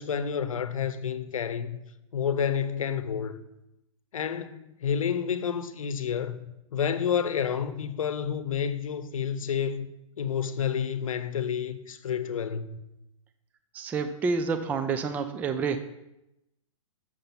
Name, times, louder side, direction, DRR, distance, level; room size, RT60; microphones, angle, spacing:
voice 1, 0.0-1.8 2.1-3.4 4.1-6.4 6.7-9.9 10.2-12.8, left 7 dB, 85° left, 0.8 m, -29 dB
voice 2, 13.7-15.8, right 5 dB, 10° right, 0.3 m, -28 dB
7.1 x 6.7 x 5.8 m
hypercardioid pair, 145°, 17 cm